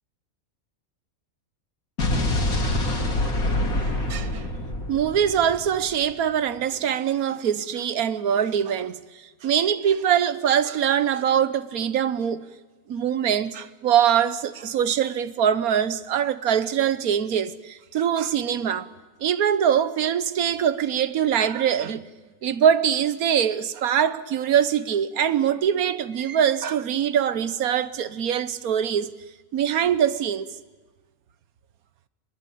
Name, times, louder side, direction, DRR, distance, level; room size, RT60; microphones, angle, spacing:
Explosion, 2.0-6.1, left 1 dB, 75° left, 3.5 m, -26 dB
voice 1, 4.1-4.4 4.9-12.4 12.9-18.9 19.2-22.1 22.4-29.1 29.5-30.5, right 9 dB, 85° right, 1.4 m, -23 dB
22.5 x 21.0 x 8.5 m
omnidirectional pair, 1.5 m